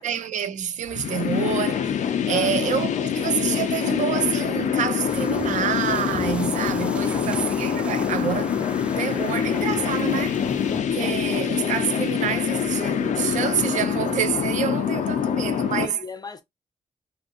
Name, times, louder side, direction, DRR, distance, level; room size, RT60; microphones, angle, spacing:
voice 1, 0.0-2.0 2.3-8.6 9.0-10.4 10.9-16.0, right 9 dB, 80° right, 0.4 m, -27 dB
sound 1, 0.9-15.9, left 8 dB, 80° left, 0.5 m, -25 dB
voice 2, 2.3-2.6 7.0-7.4 15.7-16.4, left 4 dB, 30° left, 0.7 m, -38 dB
sound 2, 5.1-10.8, right 1 dB, 10° right, 0.3 m, -37 dB
2.7 x 2.5 x 2.5 m
cardioid pair, 90°, 13 cm